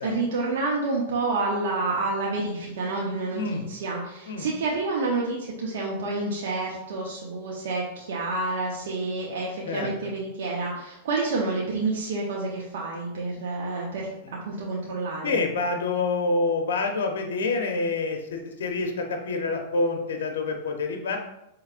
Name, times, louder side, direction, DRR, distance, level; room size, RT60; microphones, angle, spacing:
voice 1, 0.0-14.1 14.4-15.4, right 3 dB, 75° right, -3 dB, 0.7 m, -29 dB
voice 2, 3.3-3.6 4.3-4.5 9.6-10.1 15.2-21.2, left 3 dB, 85° left, 4 dB, 0.6 m, -27 dB
4.7 x 3.1 x 2.4 m, 0.87 s
supercardioid pair, 140°, 0 cm